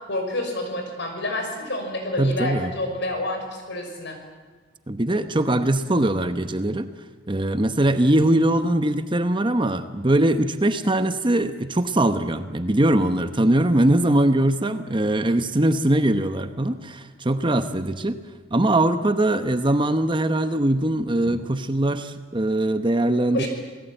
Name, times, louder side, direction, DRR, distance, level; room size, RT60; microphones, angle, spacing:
voice 1, 0.1-4.2 23.3-23.5, left 1 dB, 55° left, 4 dB, 6.0 m, -28 dB
voice 2, 2.2-2.7 4.9-6.9 7.3-18.2 18.5-23.4, right 1 dB, 25° right, 10 dB, 0.9 m, -21 dB
28.0 x 18.5 x 9.1 m, 1.4 s
head